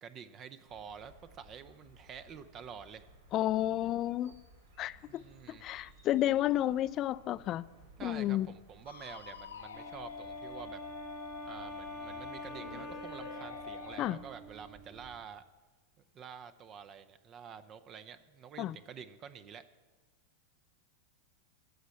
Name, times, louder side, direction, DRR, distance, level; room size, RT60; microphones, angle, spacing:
voice 1, 0.0-3.1 5.1-5.6 8.0-10.8 11.4-15.4 16.1-19.7, right 7 dB, 35° right, 12 dB, 0.6 m, -48 dB
sound 1, 0.6-15.2, equal, 70° right, 2.3 m, -59 dB
voice 2, 3.3-4.4 4.8-5.2 5.5-7.6 8.0-8.5 14.0-14.2 18.6-18.8, left 13 dB, 40° left, 18 dB, 0.4 m, -31 dB
sound 2, 8.9-14.1, left 6 dB, 75° left, 0.7 m, -46 dB
Wind instrument woodwind instrument, 9.7-15.2, right 1 dB, 10° right, 1.2 m, -47 dB
14.5 x 5.1 x 8.3 m, 1.4 s
figure-of-eight pair, 90°, 0 cm